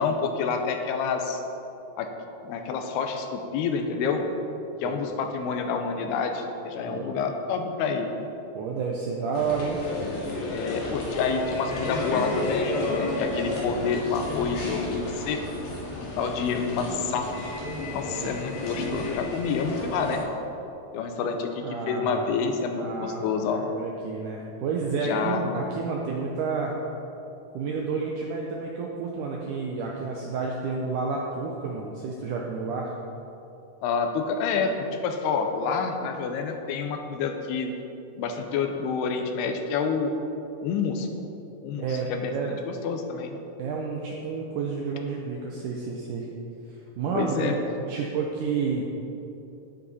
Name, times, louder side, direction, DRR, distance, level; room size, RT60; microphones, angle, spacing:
voice 1, 0.0-1.4 2.0-2.1 2.4-4.2 4.8-8.1 10.5-15.4 16.0-17.3 17.9-20.2 20.9-23.6 25.0-25.4 33.8-37.7 38.2-40.1 40.6-41.3 41.6-43.4 47.1-47.6, left 5 dB, 85° left, 5 dB, 2.8 m, -28 dB
voice 2, 8.6-9.8 18.2-18.3 21.6-22.3 22.7-23.2 23.7-26.7 27.5-32.9 41.8-42.6 43.6-46.3 46.7-47.6 47.9-48.9, right 5 dB, 85° right, -1 dB, 1.8 m, -30 dB
sound 1, 9.3-20.2, left 2 dB, 60° left, 3.4 m, -32 dB
10.0 x 9.5 x 4.2 m, 3.0 s
omnidirectional pair, 4.6 m